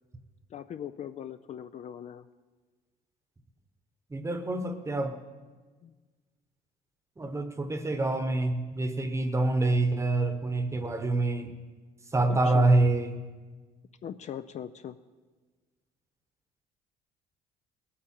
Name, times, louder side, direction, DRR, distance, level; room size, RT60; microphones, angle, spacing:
voice 1, 0.5-2.3 5.8-5.9 10.8-10.9 12.3-12.7 14.0-15.0, left 9 dB, 45° left, 11 dB, 0.4 m, -40 dB
voice 2, 4.1-5.1 7.2-11.5 12.1-13.2, right 2 dB, 15° right, 9 dB, 1.0 m, -26 dB
19.0 x 8.6 x 4.5 m, 1.4 s
cardioid pair, 110°, 17 cm